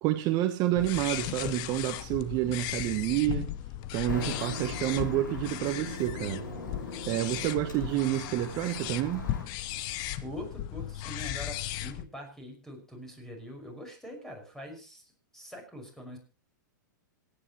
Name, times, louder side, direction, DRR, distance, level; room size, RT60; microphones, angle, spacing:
voice 1, 0.0-3.5 3.9-6.4 7.1-9.3, right 14 dB, 40° right, 1.1 m, -29 dB
sound 1, 0.8-12.0, left 13 dB, 45° left, 1.0 m, -36 dB
Traffic noise roadway noise, 4.1-9.4, left 3 dB, 80° left, 5.5 m, -40 dB
voice 2, 10.2-16.2, equal, 5° left, 5.9 m, -43 dB
26.5 x 10.0 x 3.1 m
hypercardioid pair, 115°, 10 cm